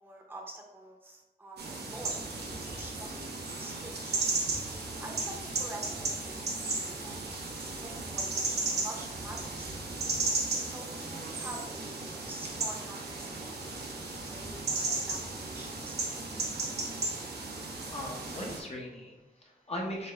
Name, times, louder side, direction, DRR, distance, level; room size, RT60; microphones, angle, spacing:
voice 1, 0.0-2.2 2.7-4.3 5.0-7.3 7.6-9.8 10.6-13.6 13.9-16.1, right 1 dB, 10° right, -1 dB, 0.8 m, -47 dB
sound 1, 1.6-18.6, right 3 dB, 80° right, 0.8 m, -35 dB
voice 2, 17.7-20.1, left 1 dB, 40° left, -2 dB, 0.8 m, -39 dB
4.0 x 3.2 x 3.3 m, 1.1 s
wide cardioid pair, 95°, 17 cm